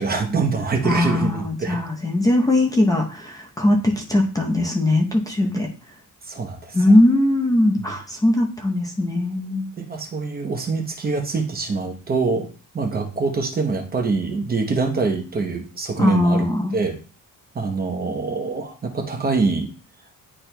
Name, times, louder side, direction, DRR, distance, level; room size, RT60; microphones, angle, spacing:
voice 1, 0.0-1.8 6.3-6.8 7.8-7.9 9.8-12.5 12.7-16.5 16.7-17.0 17.5-19.7, right 4 dB, 25° right, 3 dB, 0.8 m, -24 dB
voice 2, 0.8-5.7 6.7-9.7 16.0-16.7, left 1 dB, 10° left, 0 dB, 0.7 m, -20 dB
10.0 x 4.3 x 2.2 m, 0.36 s
cardioid pair, 170°, 34 cm